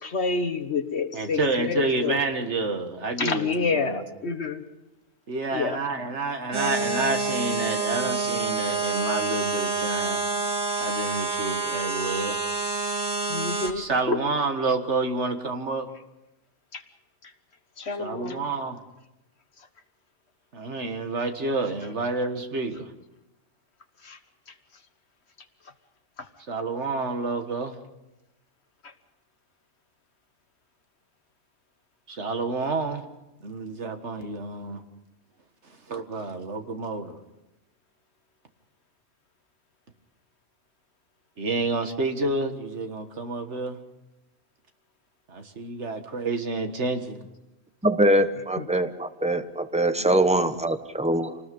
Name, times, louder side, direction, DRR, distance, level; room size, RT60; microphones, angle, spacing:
voice 1, 0.0-2.2 3.2-4.6 5.5-5.8 13.3-14.2 16.7-16.8 17.2-17.3 17.8-18.4 24.0-24.2 24.5-24.6 26.2-26.3 28.8-28.9 48.6-48.7, left 4 dB, 60° left, 8 dB, 1.6 m, -28 dB
voice 2, 1.1-4.0 5.3-10.2 10.8-12.4 13.8-15.9 18.0-18.8 20.5-22.9 26.5-27.8 32.1-33.0 33.4-34.8 35.6-37.2 41.4-43.8 45.3-47.2 50.0-50.1, right 3 dB, 60° right, 6 dB, 1.9 m, -29 dB
sound 1, 6.5-13.7, right 4 dB, 80° right, 2.4 m, -27 dB
voice 3, 47.8-51.4, right 1 dB, 5° right, 9 dB, 0.9 m, -23 dB
27.0 x 19.5 x 5.4 m, 0.99 s
omnidirectional pair, 1.3 m